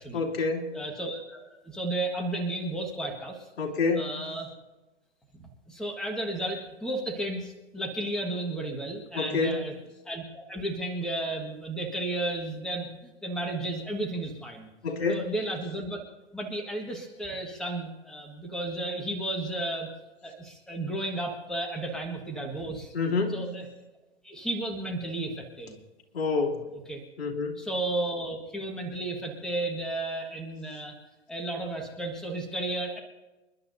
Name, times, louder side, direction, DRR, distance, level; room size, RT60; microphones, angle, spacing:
voice 1, 0.1-0.7 3.6-4.1 9.1-9.6 14.8-15.3 22.9-23.4 26.1-26.7 27.2-27.6, left 4 dB, 55° left, 0 dB, 3.0 m, -27 dB
voice 2, 0.7-3.5 4.0-4.5 5.4-9.7 10.0-14.7 15.1-16.0 16.3-19.9 20.2-22.9 23.3-23.6 24.2-25.8 26.9-27.0 27.6-31.0 31.3-33.0, right 1 dB, ahead, 2 dB, 1.6 m, -33 dB
28.5 x 11.5 x 2.7 m, 1.1 s
figure-of-eight pair, 125°, 36 cm